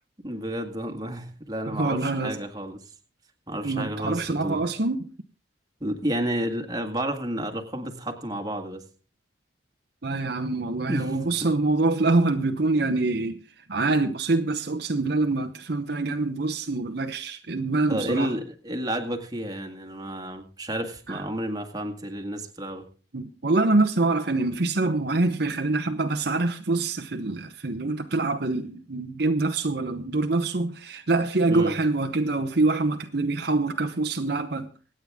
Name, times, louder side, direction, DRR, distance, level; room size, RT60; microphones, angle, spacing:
voice 1, 0.2-2.9 3.5-4.6 5.8-8.8 10.9-11.1 17.9-22.9 31.5-31.7, right 1 dB, 20° right, 1.8 m, -31 dB
voice 2, 1.7-2.4 3.6-5.1 10.0-18.3 21.1-21.3 23.1-34.7, right 3 dB, 55° right, 0.9 m, -25 dB
25.0 x 8.9 x 3.6 m
head